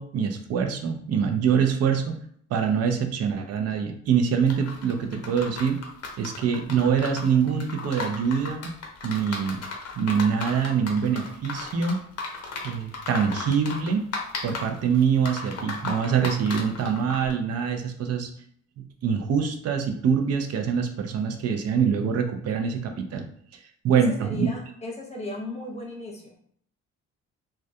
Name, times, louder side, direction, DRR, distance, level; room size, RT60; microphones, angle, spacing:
voice 1, 0.0-2.2 2.5-5.8 6.2-8.7 9.0-9.6 10.0-12.1 12.6-14.1 14.4-18.3 18.8-23.2 23.5-24.5, right 7 dB, 55° right, 5 dB, 0.5 m, -24 dB
sound 1, 4.5-17.3, left 3 dB, 55° left, 0.6 m, -36 dB
voice 2, 23.9-26.3, left 2 dB, 20° left, -1 dB, 0.8 m, -36 dB
2.3 x 2.2 x 2.6 m, 0.64 s
cardioid pair, 90°, 30 cm